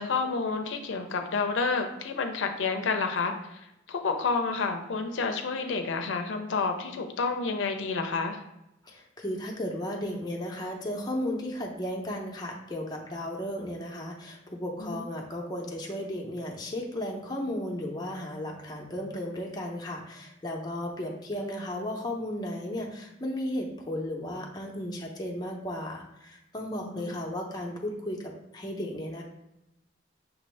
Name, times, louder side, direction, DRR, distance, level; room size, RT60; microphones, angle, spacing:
voice 1, 0.0-3.6 3.9-8.4 14.8-15.0 26.9-27.1, left 4 dB, 85° left, 5 dB, 0.5 m, -29 dB
voice 2, 8.8-29.2, left 1 dB, 20° left, -1 dB, 0.6 m, -35 dB
5.9 x 2.6 x 3.2 m, 0.87 s
head